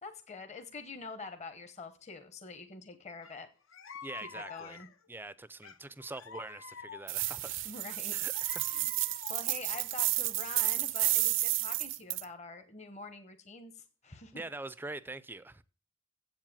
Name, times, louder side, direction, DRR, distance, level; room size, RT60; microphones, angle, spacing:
voice 1, 0.0-3.5 4.3-4.9 7.6-8.9 9.3-14.4, left 3 dB, 35° left, 1.0 m, -46 dB
sound 1, 3.2-3.4 3.7-5.1 5.6-7.4 7.9-9.7, left 6 dB, 70° left, 0.7 m, -48 dB
voice 2, 4.0-4.8 5.1-7.6 8.1-8.9 14.3-15.6, right 2 dB, 10° right, 0.4 m, -44 dB
sound 2, 7.1-12.2, right 17 dB, 65° right, 0.5 m, -31 dB
8.0 x 7.5 x 7.3 m
head